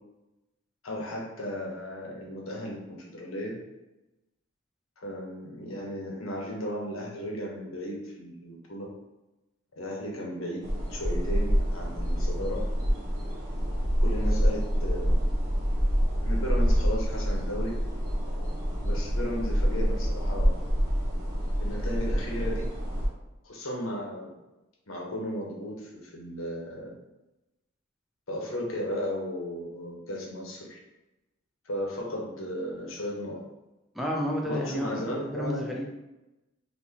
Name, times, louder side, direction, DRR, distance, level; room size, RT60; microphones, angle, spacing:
voice 1, 0.8-3.5 5.0-8.9 9.8-12.6 14.0-15.2 16.2-17.8 18.8-20.5 21.6-22.7 23.4-24.3 24.9-26.9 28.3-30.8 31.6-33.4 34.4-35.7, equal, 80° left, -2 dB, 1.0 m, -35 dB
sound 1, 10.6-23.1, equal, 40° right, 0.9 m, -27 dB
voice 2, 33.9-35.1 35.3-35.9, equal, ahead, -3 dB, 0.5 m, -30 dB
3.6 x 2.8 x 2.9 m, 0.99 s
head